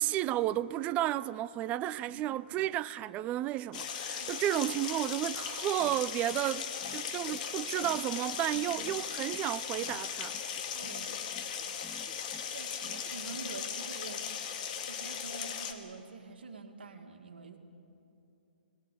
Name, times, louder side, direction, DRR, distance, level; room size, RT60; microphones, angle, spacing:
voice 1, 0.0-10.3, right 13 dB, 25° right, 0.4 m, -32 dB
sound 1, 3.7-15.7, left 7 dB, 50° left, 2.0 m, -38 dB
sound 2, 5.8-13.4, left 5 dB, 15° left, 1.2 m, -54 dB
voice 2, 10.7-11.2 12.5-14.2 14.9-17.6, right 4 dB, 75° right, 2.2 m, -46 dB
21.5 x 19.0 x 8.5 m
hypercardioid pair, 130°, 6 cm